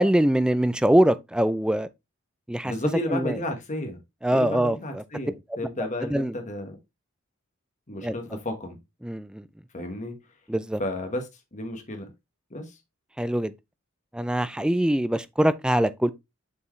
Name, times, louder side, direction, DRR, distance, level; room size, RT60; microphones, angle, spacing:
voice 1, 0.0-1.9 2.5-2.7 3.1-3.4 4.2-5.0 6.1-6.4 8.0-8.2 9.0-9.4 10.5-10.8 13.2-13.5 14.1-16.1, right 1 dB, 5° right, 0.3 m, -23 dB
voice 2, 2.6-4.0 4.3-6.8 7.9-8.8 9.7-10.2 10.8-12.1 12.5-12.8, left 1 dB, 35° left, 1.5 m, -32 dB
6.9 x 4.6 x 3.1 m
head